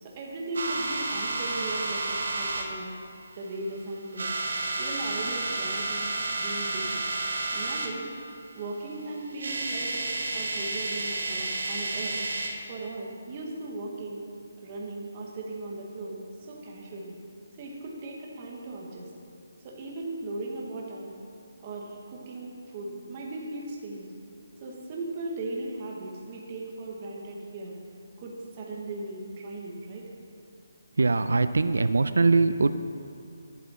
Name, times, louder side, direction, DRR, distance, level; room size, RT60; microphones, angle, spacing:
voice 1, 0.0-2.9 3.4-4.3 4.8-7.0 7.5-8.1 8.5-12.2 12.7-14.2 14.6-17.1 17.6-19.1 19.6-21.1 21.6-24.1 24.6-27.8 28.2-30.1, right 2 dB, 20° right, -2 dB, 1.2 m, -37 dB
sound 1, 0.5-2.7 3.4-3.8 4.1-8.0 9.0-9.1 9.3-12.6, right 2 dB, 50° right, 1.2 m, -31 dB
voice 2, 30.9-32.7, right 3 dB, 85° right, 11 dB, 0.4 m, -22 dB
11.5 x 9.7 x 4.2 m, 2.4 s
hypercardioid pair, 180°, 0 cm